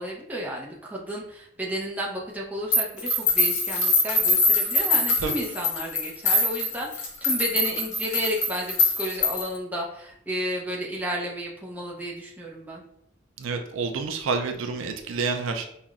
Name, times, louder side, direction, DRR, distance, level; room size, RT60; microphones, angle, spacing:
voice 1, 0.0-12.8, equal, 10° right, -3 dB, 0.6 m, -32 dB
sound 1, 2.7-9.6, left 2 dB, 35° left, 0.9 m, -23 dB
voice 2, 13.4-15.7, right 4 dB, 75° right, 5 dB, 0.4 m, -28 dB
5.5 x 2.2 x 2.4 m, 0.74 s
head